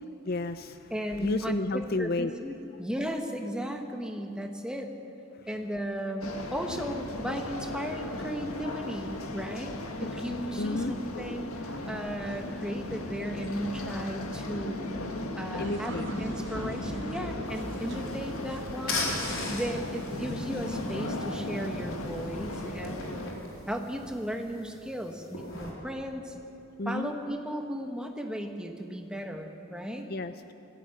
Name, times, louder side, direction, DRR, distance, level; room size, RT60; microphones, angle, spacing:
voice 1, 0.2-0.9 1.2-2.3 5.4-5.5 10.6-11.0 15.6-16.1 26.8-27.1 30.1-30.5, left 2 dB, 45° left, 11 dB, 0.5 m, -32 dB
voice 2, 0.9-4.9 5.5-9.7 10.0-15.0 15.3-23.3 23.7-26.3 26.8-30.0, equal, 5° right, 3 dB, 1.4 m, -35 dB
sound 1, 6.2-23.3, left 1 dB, 90° left, 1.8 m, -36 dB
traim inside, 15.6-21.1, right 2 dB, 55° right, 0.7 m, -46 dB
sound 2, 17.5-25.7, left 2 dB, 75° left, 3.8 m, -39 dB
20.5 x 15.0 x 9.2 m, 2.9 s
head